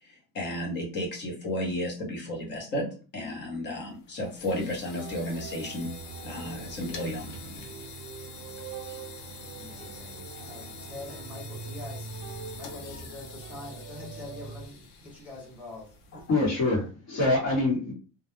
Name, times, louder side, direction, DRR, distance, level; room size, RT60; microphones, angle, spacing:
voice 1, 0.0-5.9 6.2-7.3 8.8-9.0 16.1-16.2, left 1 dB, 30° left, 0.7 m, -33 dB
sound 1, 3.9-16.7, left 4 dB, 70° left, 0.6 m, -45 dB
sound 2, 4.9-14.7, right 6 dB, 70° right, 0.5 m, -43 dB
voice 2, 9.6-12.1 12.6-15.9, left 2 dB, 5° right, 0.3 m, -44 dB
voice 3, 16.3-17.9, left 2 dB, 50° left, 1.0 m, -25 dB
2.2 x 2.0 x 3.0 m
cardioid pair, 180°, 34 cm